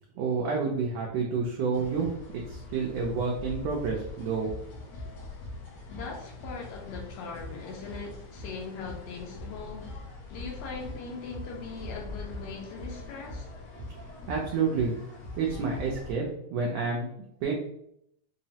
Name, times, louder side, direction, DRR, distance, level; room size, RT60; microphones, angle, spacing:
voice 1, 0.2-4.5 14.3-15.0 15.4-16.2 16.5-17.1 17.4-17.5, right 5 dB, 75° right, 1.6 m, -29 dB
sound 1, 1.7-16.1, left 2 dB, 70° left, 1.8 m, -42 dB
voice 2, 5.9-10.0 10.3-13.5, left 4 dB, 85° left, 1.4 m, -40 dB
5.4 x 2.0 x 2.7 m
omnidirectional pair, 3.4 m